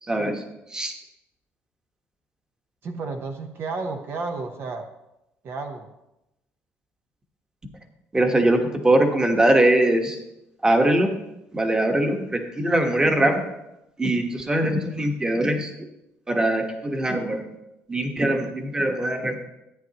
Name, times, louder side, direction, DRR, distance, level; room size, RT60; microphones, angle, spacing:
voice 1, 0.0-0.4 0.7-0.9 8.1-10.2 10.6-11.1 11.5-13.4 14.0-15.9 16.3-17.4 17.9-19.5, right 1 dB, 15° right, 4 dB, 1.3 m, -22 dB
voice 2, 2.8-4.9 5.4-5.9, right 3 dB, 50° right, 4 dB, 0.9 m, -32 dB
14.0 x 9.2 x 3.0 m, 0.90 s
cardioid pair, 120°, 5 cm